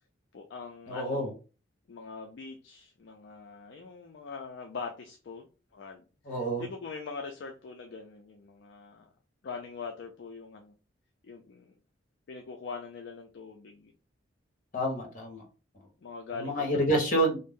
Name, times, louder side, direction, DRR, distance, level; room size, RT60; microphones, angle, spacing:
voice 1, 0.3-1.3 1.9-5.5 5.7-9.1 9.4-10.7 11.2-11.7 12.3-13.9 16.0-16.9, left 5 dB, 65° left, 3 dB, 0.4 m, -42 dB
voice 2, 0.9-1.3 6.2-6.6 14.7-15.5 16.3-17.4, right 1 dB, 45° left, 1 dB, 1.1 m, -28 dB
2.6 x 2.0 x 3.5 m, 0.34 s
head